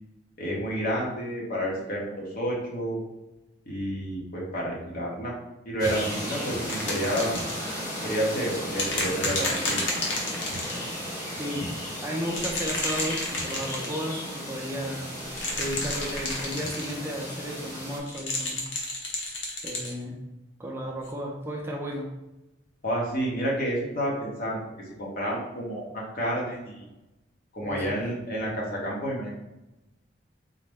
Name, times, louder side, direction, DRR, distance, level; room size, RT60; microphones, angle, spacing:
voice 1, 0.4-3.0 3.7-5.4 5.7-7.4 8.0-9.9 22.8-24.6 25.0-26.8 27.5-29.3, equal, 55° left, -3 dB, 1.0 m, -30 dB
sound 1, 5.8-18.0, equal, 20° left, 1.1 m, -35 dB
voice 2, 6.4-7.5 8.8-15.3 15.6-18.6 19.6-20.2 20.6-22.1 27.6-27.9, equal, 15° right, -2 dB, 0.5 m, -35 dB
sound 2, 6.7-7.6 8.8-10.9 12.3-13.9 15.3-16.9 18.1-19.9 21.1-21.2, left 2 dB, 85° left, 0.8 m, -31 dB
4.0 x 2.1 x 3.4 m, 0.97 s
head